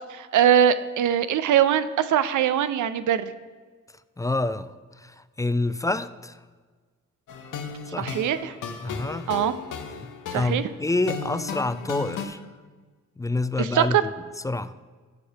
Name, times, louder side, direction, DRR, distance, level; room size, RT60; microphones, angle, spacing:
voice 1, 0.1-3.3 8.0-8.5 9.3-9.5 10.3-10.6 13.6-14.0, right 9 dB, 70° right, 13 dB, 0.5 m, -22 dB
voice 2, 4.2-6.4 7.9-8.1 8.8-9.3 10.0-10.1 10.3-12.4 13.2-14.1 14.4-14.8, left 2 dB, 10° left, 14 dB, 0.3 m, -27 dB
sound 1, 7.3-12.3, left 6 dB, 70° left, 0.8 m, -35 dB
7.0 x 4.9 x 5.7 m, 1.4 s
supercardioid pair, 50°, 31 cm